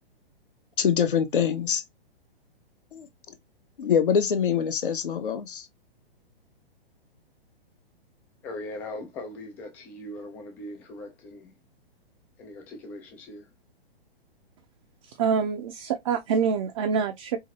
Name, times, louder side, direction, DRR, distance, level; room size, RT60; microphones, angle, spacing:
voice 1, 0.8-1.8 2.9-3.1 3.8-5.7, left 7 dB, 55° left, 0.9 m, -24 dB
voice 2, 8.4-11.5 12.4-13.5, left 1 dB, 5° left, 0.3 m, -40 dB
voice 3, 15.0-17.4, right 6 dB, 35° right, 0.6 m, -26 dB
4.8 x 2.7 x 2.8 m
figure-of-eight pair, 115°, 31 cm